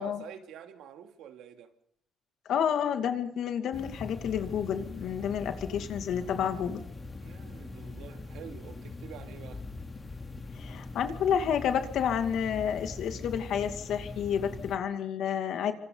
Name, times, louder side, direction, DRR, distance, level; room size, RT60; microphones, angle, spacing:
voice 1, 0.0-1.7 6.2-6.9 7.1-9.6, right 8 dB, 90° right, 2.7 m, -48 dB
voice 2, 2.5-6.8 10.5-15.7, left 8 dB, 75° left, 2.5 m, -30 dB
sound 1, 3.7-14.8, left 3 dB, 30° left, 3.3 m, -42 dB
28.5 x 26.0 x 4.0 m
cardioid pair, 90°, 0 cm